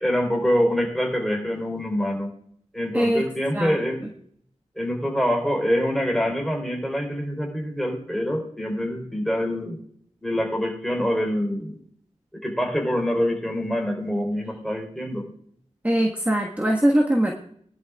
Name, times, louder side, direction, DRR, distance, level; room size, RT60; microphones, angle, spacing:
voice 1, 0.0-2.3 2.7-4.0 4.8-9.8 10.2-11.7 12.4-15.3, equal, ahead, 0 dB, 3.9 m, -25 dB
voice 2, 15.8-17.3, right 1 dB, 15° right, 0 dB, 1.5 m, -21 dB
19.5 x 11.5 x 2.4 m, 0.64 s
wide cardioid pair, 80°, 12 cm